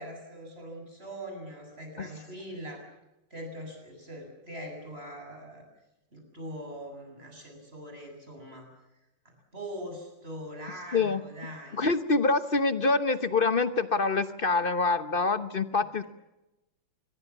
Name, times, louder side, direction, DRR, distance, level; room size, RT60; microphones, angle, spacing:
voice 1, 0.0-2.9 3.3-5.6 6.1-8.7 9.2-11.8, equal, 25° right, 2 dB, 7.9 m, -42 dB
voice 2, 11.8-16.0, left 3 dB, 55° left, 12 dB, 0.5 m, -26 dB
25.5 x 22.0 x 7.2 m, 0.95 s
omnidirectional pair, 2.4 m